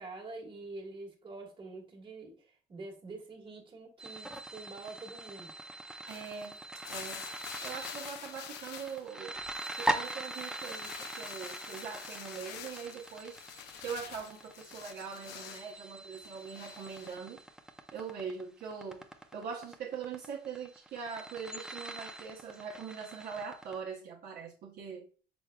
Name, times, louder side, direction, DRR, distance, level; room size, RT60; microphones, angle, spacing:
voice 1, 0.0-5.5, right 3 dB, 30° right, 1.4 m, -46 dB
sound 1, 4.0-23.7, right 1 dB, 5° right, 0.5 m, -42 dB
voice 2, 6.0-6.6 6.9-7.2 7.6-9.4 9.8-13.4 13.8-17.4 17.9-19.0 19.3-25.1, right 6 dB, 65° right, 0.8 m, -42 dB
sound 2, 6.1-9.1 9.3-15.7 16.1-17.2, left 10 dB, 85° left, 0.5 m, -48 dB
6.1 x 3.5 x 2.2 m
cardioid pair, 110°, 17 cm